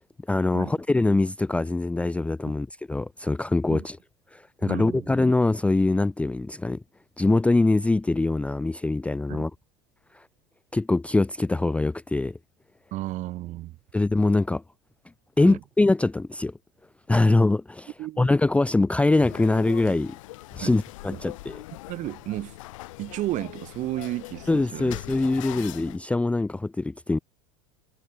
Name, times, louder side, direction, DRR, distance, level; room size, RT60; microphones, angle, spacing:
voice 1, 0.3-4.0 4.3-6.8 7.2-9.5 10.1-10.2 10.7-12.4 13.9-14.6 15.4-16.5 17.1-20.1 20.6-21.6 24.5-27.2, left 2 dB, 5° left, 0.7 m, -23 dB
voice 2, 4.6-5.1 9.3-9.5 12.9-13.8 15.4-15.6 18.0-18.3 20.6-20.8 21.1-21.2 21.9-22.6 23.0-25.0, right 16 dB, 50° right, 2.4 m, -33 dB
sound 1, 19.1-26.0, left 19 dB, 75° left, 7.4 m, -41 dB
supercardioid pair, 115°, 17 cm